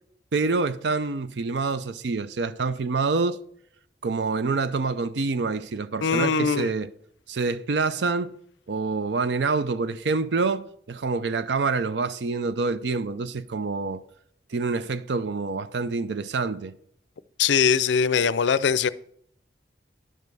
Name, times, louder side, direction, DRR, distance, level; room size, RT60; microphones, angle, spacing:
voice 1, 0.3-3.4 4.0-6.9 7.3-8.3 8.7-14.0 14.5-16.7, right 4 dB, 75° right, 0.5 m, -26 dB
voice 2, 6.0-6.7 17.4-18.9, left 6 dB, 85° left, 0.5 m, -21 dB
11.0 x 5.3 x 6.2 m
head